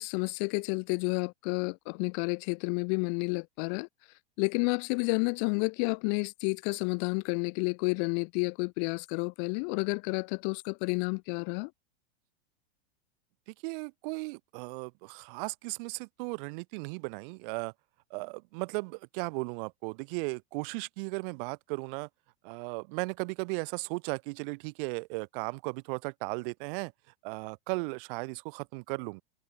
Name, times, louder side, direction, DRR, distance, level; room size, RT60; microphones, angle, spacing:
voice 1, 0.0-3.9 4.4-11.7, left 40 dB or more, 45° left, 0.6 m, -30 dB
voice 2, 13.6-17.7 18.1-22.1 22.4-26.9 27.2-29.2, right 29 dB, 55° right, 1.1 m, -36 dB
hypercardioid pair, 115°, 33 cm